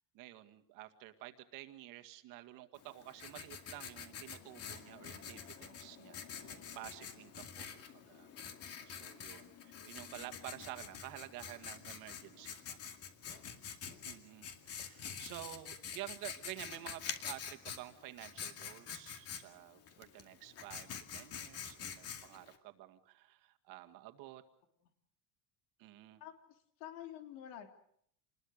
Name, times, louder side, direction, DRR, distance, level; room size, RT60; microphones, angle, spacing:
voice 1, 0.1-8.3 8.9-12.8 14.1-24.4 25.8-26.2, right 15 dB, 50° right, 7 dB, 2.0 m, -51 dB
Writing, 2.7-22.6, left 7 dB, 35° left, 2.3 m, -47 dB
voice 2, 26.2-27.7, left 11 dB, 85° left, 5 dB, 3.5 m, -50 dB
27.5 x 21.0 x 6.6 m, 0.67 s
cardioid pair, 175°, 41 cm